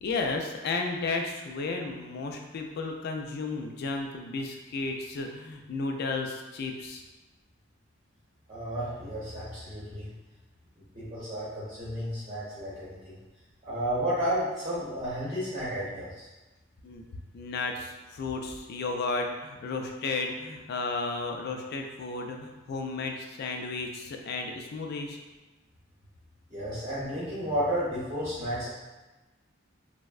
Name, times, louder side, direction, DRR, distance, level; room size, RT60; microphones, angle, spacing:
voice 1, 0.0-7.0 16.8-17.0 17.3-25.2, left 3 dB, 55° left, 3 dB, 0.3 m, -33 dB
voice 2, 8.5-10.1 10.9-13.2 13.6-16.3 26.5-28.7, equal, 30° right, -10 dB, 0.8 m, -32 dB
3.3 x 2.0 x 2.3 m, 1.1 s
head